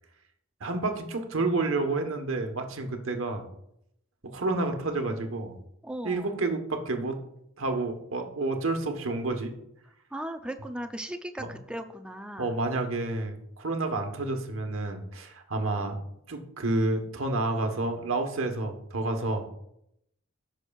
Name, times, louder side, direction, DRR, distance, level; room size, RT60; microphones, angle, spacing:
voice 1, 0.6-3.4 4.3-5.6 6.0-7.2 7.6-9.5 11.4-11.5 12.4-16.0 16.3-19.5, right 2 dB, 70° right, 5 dB, 1.2 m, -29 dB
voice 2, 5.8-6.4 10.1-12.6, right 1 dB, 5° right, 6 dB, 0.5 m, -37 dB
15.0 x 6.2 x 2.4 m, 0.78 s
head